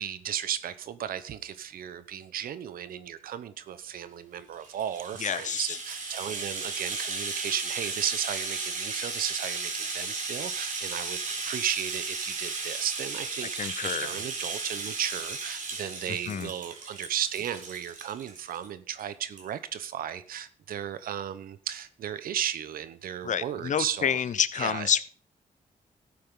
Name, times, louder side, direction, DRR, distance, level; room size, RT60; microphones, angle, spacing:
voice 1, 0.0-24.2 24.6-24.9, right 10 dB, 85° right, 1.0 m, -35 dB
Rattle (instrument), 4.5-18.7 19.0-19.1 19.4-19.5, right 4 dB, 65° right, 3.8 m, -35 dB
voice 2, 5.2-5.8 13.4-14.1 16.1-16.5 23.2-25.0, left 8 dB, 60° left, 0.8 m, -29 dB
13.0 x 8.6 x 3.8 m
cardioid pair, 85°, 14 cm